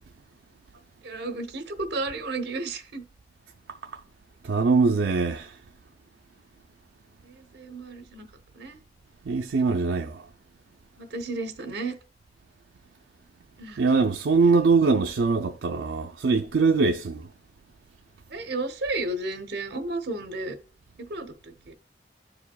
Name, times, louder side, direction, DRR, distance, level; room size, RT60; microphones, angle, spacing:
voice 1, 1.0-3.0 7.2-8.3 8.5-8.8 11.0-11.9 13.6-13.8 18.3-20.6 21.0-21.7, right 2 dB, 70° right, 0.9 m, -33 dB
voice 2, 3.7-4.0 4.4-5.6 9.2-10.3 13.8-17.3, right 4 dB, 85° right, 0.4 m, -23 dB
12.0 x 4.8 x 2.2 m
head